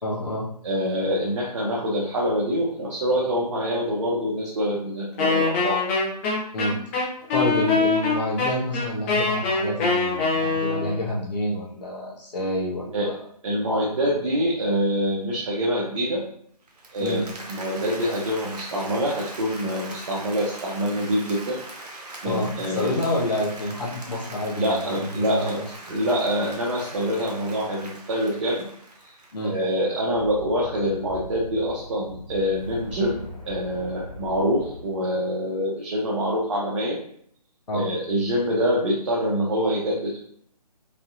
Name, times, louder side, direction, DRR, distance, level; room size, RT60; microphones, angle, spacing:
voice 1, 0.0-0.5 6.5-6.8 7.3-13.2 17.0-17.2 22.2-25.5 29.3-29.5 37.7-37.9, left 1 dB, 80° left, -6 dB, 1.5 m, -28 dB
voice 2, 0.6-5.8 12.9-13.1 13.4-16.2 16.9-21.6 22.2-22.9 24.6-25.6 25.9-28.7 29.4-37.0 37.7-40.2, equal, 50° right, -4 dB, 1.0 m, -25 dB
Wind instrument woodwind instrument, 5.2-11.0, left 4 dB, 20° left, 1.0 m, -23 dB
Applause, 16.7-29.7, right 2 dB, 75° right, 1.2 m, -41 dB
sound 1, 30.1-35.1, left 1 dB, 45° left, 1.3 m, -40 dB
5.3 x 2.9 x 2.7 m, 0.65 s
figure-of-eight pair, 150°, 21 cm